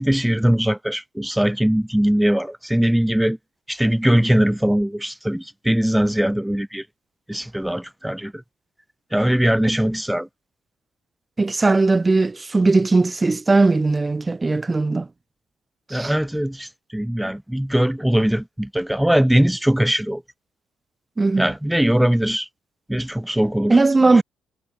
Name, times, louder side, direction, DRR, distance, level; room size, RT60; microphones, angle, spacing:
voice 1, 0.0-3.4 3.7-6.8 7.3-8.4 9.1-10.3 15.9-20.2 21.4-22.5 22.9-23.8 24.2-24.3, equal, 5° right, 2.1 m, -20 dB
voice 2, 11.4-15.1 15.9-16.1 21.2-21.5 23.7-24.2, right 3 dB, 20° right, 1.4 m, -18 dB
cardioid pair, 90°, 0 cm